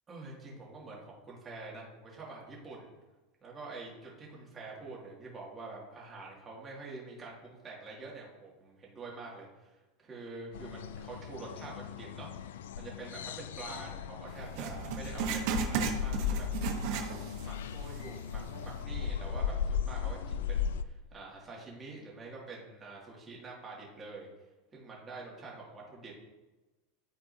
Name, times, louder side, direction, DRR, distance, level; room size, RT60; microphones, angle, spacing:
voice 1, 0.1-2.9 3.4-17.0 17.4-24.3 24.7-26.2, right 3 dB, 25° right, -4 dB, 2.4 m, -46 dB
sound 1, 10.5-20.8, left 8 dB, 90° left, 0.3 m, -37 dB
Writing, 14.5-17.5 17.9-18.0 18.7-18.8, right 6 dB, 60° right, 1.1 m, -34 dB
12.5 x 4.3 x 2.9 m, 1.1 s
supercardioid pair, 130°, 0 cm